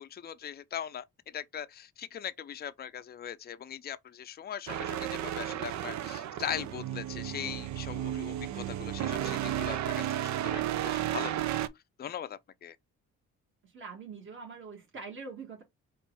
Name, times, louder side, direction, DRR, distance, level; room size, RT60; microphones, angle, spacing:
voice 1, 0.0-11.4 12.0-12.8, left 9 dB, 35° left, 0.5 m, -40 dB
sound 1, 4.7-11.7, right 12 dB, 70° right, 0.6 m, -33 dB
voice 2, 13.6-15.6, right 4 dB, 40° right, 1.9 m, -44 dB
4.4 x 2.6 x 4.6 m
cardioid pair, 90°, 30 cm